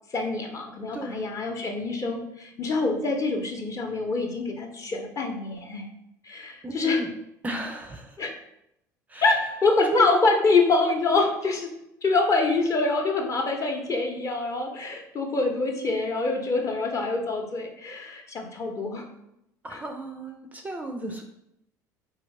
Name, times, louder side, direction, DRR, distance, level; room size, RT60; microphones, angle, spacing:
voice 1, 0.1-5.9 6.2-7.0 8.2-8.3 9.2-11.7 12.0-19.1 19.7-19.8, left 3 dB, 30° left, 3 dB, 0.7 m, -25 dB
voice 2, 0.9-1.2 6.6-7.1 7.4-8.2 9.1-9.4 9.9-10.1 19.6-21.2, right 2 dB, 15° right, 3 dB, 0.4 m, -34 dB
3.9 x 2.8 x 3.2 m, 0.81 s
figure-of-eight pair, 60°, 10 cm